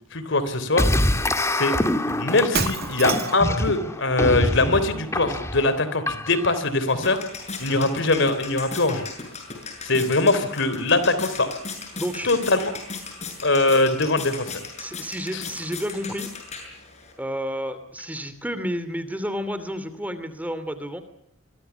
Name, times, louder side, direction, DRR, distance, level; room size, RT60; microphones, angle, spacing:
voice 1, 0.1-0.9 1.5-1.8 2.1-7.2 7.6-9.0 9.8-11.5 12.2-12.7 13.4-14.6 15.3-15.4, left 2 dB, 65° left, 12 dB, 3.5 m, -22 dB
sound 1, 0.8-6.6, left 1 dB, 15° left, 1.9 m, -25 dB
Shatter, 2.5-3.5, right 7 dB, 55° right, 1.9 m, -28 dB
sound 2, 6.4-17.1, left 4 dB, 35° left, 7.6 m, -37 dB
voice 2, 11.9-12.3 14.8-16.3 17.2-21.0, equal, 10° right, 11 dB, 2.7 m, -31 dB
28.0 x 23.5 x 7.0 m, 0.71 s
head